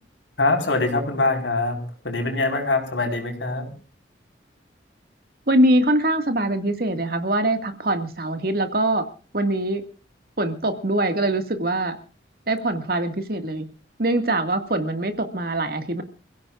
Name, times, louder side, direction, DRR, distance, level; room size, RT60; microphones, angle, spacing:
voice 1, 0.4-1.8 2.0-3.7, left 2 dB, 90° left, 2 dB, 4.8 m, -23 dB
voice 2, 5.5-9.0 9.3-9.9 10.4-12.0 12.5-13.7 14.0-16.0, right 1 dB, 55° right, 6 dB, 2.0 m, -23 dB
28.5 x 16.0 x 2.5 m, 0.36 s
head